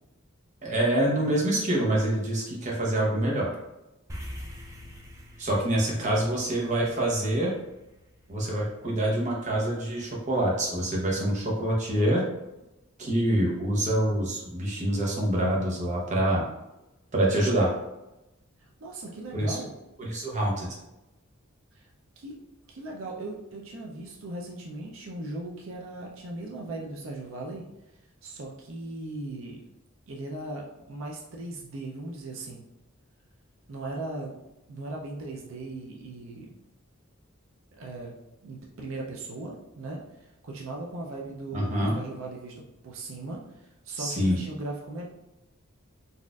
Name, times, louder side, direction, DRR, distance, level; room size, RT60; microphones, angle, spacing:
voice 1, 0.6-3.5 5.4-7.5 8.3-12.2 13.0-16.4 17.1-17.7 19.3-19.6 20.0-20.7 41.5-42.0 44.0-44.4, right 1 dB, 35° right, -3 dB, 0.7 m, -26 dB
sound 1, 4.1-8.6, equal, 15° right, 0.3 m, -44 dB
voice 2, 18.6-19.7 21.7-21.9 22.2-22.4 22.7-27.6 28.2-29.6 30.1-32.6 33.7-34.4 34.7-36.5 37.7-38.1 38.4-40.0 40.4-43.4 43.8-45.1, right 2 dB, 70° right, -2 dB, 0.5 m, -38 dB
4.0 x 2.5 x 2.3 m, 0.94 s
head